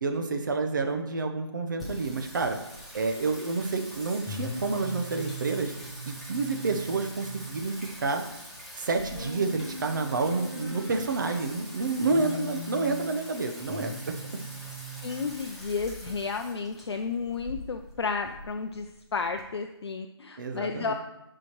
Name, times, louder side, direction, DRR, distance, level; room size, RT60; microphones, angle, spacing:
voice 1, 0.0-2.6 2.9-5.7 6.1-8.2 8.8-14.1 20.4-20.9, right 3 dB, 45° right, 6 dB, 0.9 m, -29 dB
Singing, 1.8-19.4, equal, ahead, 0.6 m, -41 dB
voice 2, 15.0-18.9 19.1-20.9, left 5 dB, 65° left, 5 dB, 0.5 m, -32 dB
11.0 x 5.0 x 3.1 m, 0.91 s
hypercardioid pair, 165°, 15 cm